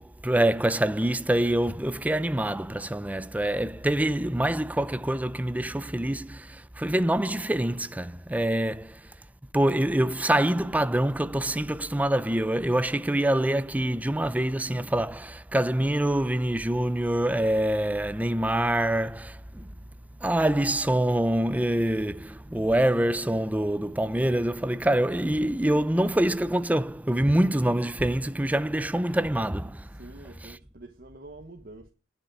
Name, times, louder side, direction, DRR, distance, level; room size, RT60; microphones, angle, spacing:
voice 1, 0.0-9.0 9.5-19.7 20.2-29.9 30.4-30.5, right 1 dB, 5° right, 0.5 m, -25 dB
voice 2, 29.9-31.9, right 2 dB, 45° right, 1.2 m, -46 dB
10.5 x 7.3 x 6.4 m
head